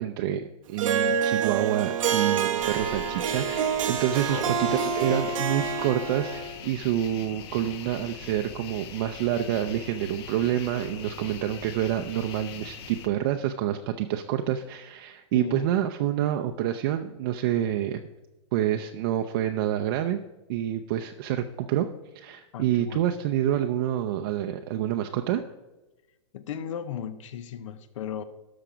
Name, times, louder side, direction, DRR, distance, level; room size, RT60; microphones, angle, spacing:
voice 1, 0.0-18.0 18.5-20.2 20.5-21.9 22.1-25.4, right 11 dB, 45° right, 5 dB, 0.6 m, -27 dB
Harp, 0.8-6.6, right 7 dB, 85° right, 0.9 m, -27 dB
sound 1, 2.6-13.1, left 7 dB, 50° left, 1.2 m, -42 dB
voice 2, 4.3-5.4 15.3-15.7 22.5-23.0 26.3-28.2, left 8 dB, 70° left, 13 dB, 0.8 m, -36 dB
12.5 x 5.9 x 5.0 m, 1.1 s
hypercardioid pair, 155°, 17 cm